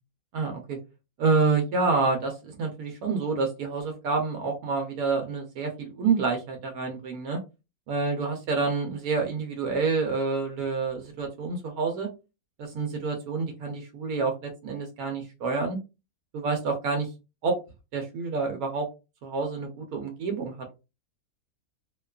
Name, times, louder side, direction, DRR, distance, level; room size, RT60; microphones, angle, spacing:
voice 1, 0.3-0.8 1.2-7.4 7.9-12.1 12.6-15.8 16.3-17.1 17.4-17.6 17.9-18.9 19.2-20.7, right 4 dB, 80° right, 3 dB, 1.1 m, -28 dB
2.6 x 2.2 x 2.2 m, 0.28 s
omnidirectional pair, 1.6 m